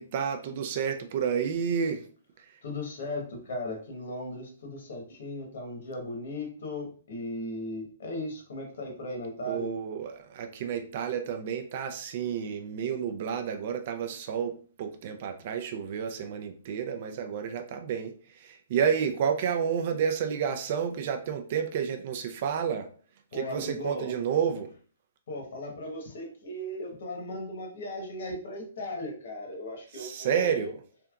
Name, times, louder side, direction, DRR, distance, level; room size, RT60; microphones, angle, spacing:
voice 1, 0.0-2.1 2.4-2.6 9.5-22.9 23.3-24.7 29.9-30.8, right 7 dB, 45° right, 6 dB, 0.4 m, -30 dB
voice 2, 2.6-9.7 23.3-24.1 25.3-30.7, left 1 dB, 65° left, 1 dB, 1.2 m, -37 dB
3.3 x 2.8 x 2.4 m, 0.42 s
hypercardioid pair, 155°, 0 cm